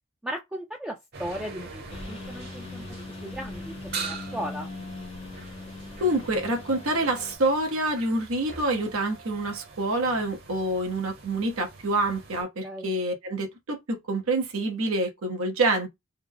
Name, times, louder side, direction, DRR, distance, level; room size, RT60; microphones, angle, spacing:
voice 1, 0.2-4.7 12.6-12.9, equal, 5° right, 0.4 m, -37 dB
sound 1, 1.1-12.4, right 4 dB, 50° right, 1.0 m, -43 dB
Engine, 1.9-7.4, left 3 dB, 30° left, 0.7 m, -40 dB
voice 2, 6.0-15.9, right 2 dB, 85° right, 0.9 m, -27 dB
3.3 x 2.0 x 3.8 m
head